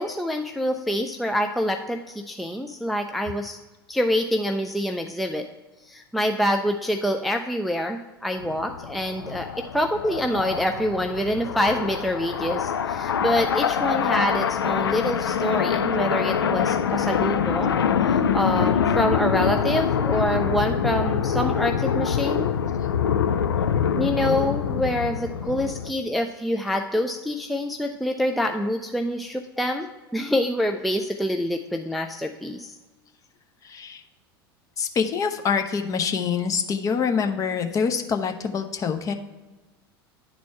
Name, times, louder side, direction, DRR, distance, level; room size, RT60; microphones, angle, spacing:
voice 1, 0.0-3.6 3.9-5.5 5.8-17.8 18.0-22.5 24.0-29.9 30.1-32.7, equal, ahead, 4 dB, 0.4 m, -26 dB
sound 1, 8.4-25.9, left 7 dB, 75° left, 0.4 m, -25 dB
voice 2, 33.6-34.0 34.8-39.1, left 6 dB, 25° left, 5 dB, 0.7 m, -25 dB
10.5 x 4.2 x 4.6 m, 1.2 s
figure-of-eight pair, 80°, 13 cm